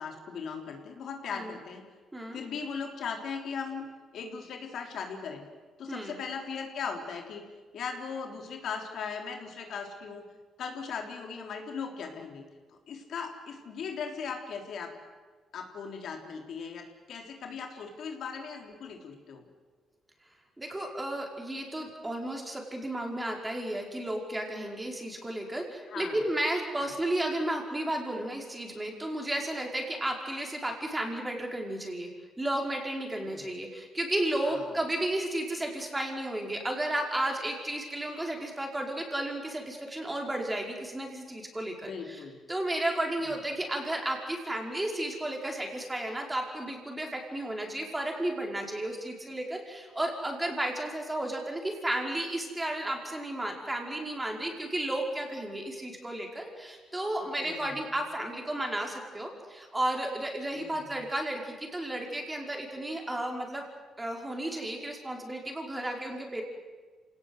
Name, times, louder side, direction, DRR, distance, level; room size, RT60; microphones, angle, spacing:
voice 1, 0.0-1.8 2.3-3.9 4.1-5.4 5.8-7.4 7.7-10.3 10.6-12.4 12.9-14.9 15.5-19.4 25.9-26.2 26.8-26.9 33.2-33.5 34.4-34.6 41.8-42.4 57.4-57.8 60.5-60.9, left 6 dB, 65° left, 3 dB, 3.5 m, -38 dB
voice 2, 5.9-6.2 20.6-32.1 32.4-63.6 64.0-66.4, right 1 dB, 15° right, 1 dB, 5.1 m, -33 dB
27.0 x 18.5 x 8.1 m, 1.4 s
cardioid pair, 90°, 0 cm